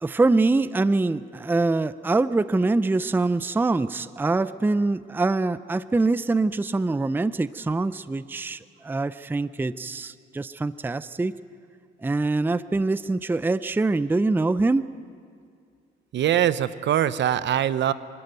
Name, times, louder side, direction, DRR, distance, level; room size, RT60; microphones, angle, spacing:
voice 1, 0.0-11.3 12.0-14.9, right 3 dB, 10° right, 15 dB, 0.5 m, -24 dB
voice 2, 16.1-17.9, right 10 dB, 65° right, 15 dB, 0.8 m, -22 dB
24.5 x 13.5 x 9.2 m, 2.3 s
cardioid pair, 90°, 20 cm